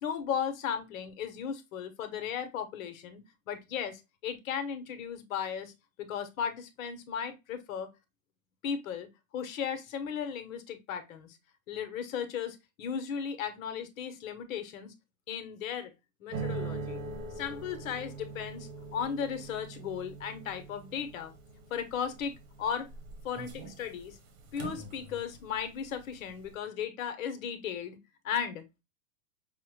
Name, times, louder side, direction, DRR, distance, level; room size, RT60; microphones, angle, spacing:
voice 1, 0.0-5.7 6.0-7.9 8.6-9.1 9.3-11.4 11.7-14.9 15.3-15.9 16.2-17.0 17.4-21.3 21.7-22.9 23.2-24.2 24.5-28.0 28.2-28.6, left 7 dB, 80° left, 1.0 m, -36 dB
sound 1, 16.3-25.6 25.9-26.4, right 4 dB, 75° right, 1.3 m, -42 dB
5.6 x 2.1 x 3.0 m
supercardioid pair, 135°, 40 cm